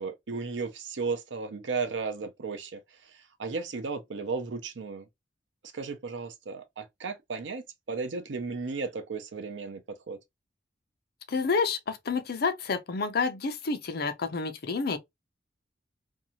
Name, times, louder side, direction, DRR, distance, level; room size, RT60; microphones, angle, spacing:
voice 1, 0.0-2.8 3.4-5.0 5.7-9.8 10.1-10.2, right 4 dB, 80° right, 0.6 m, -34 dB
voice 2, 11.3-15.0, left 4 dB, 60° left, 0.5 m, -29 dB
2.6 x 2.3 x 2.8 m
head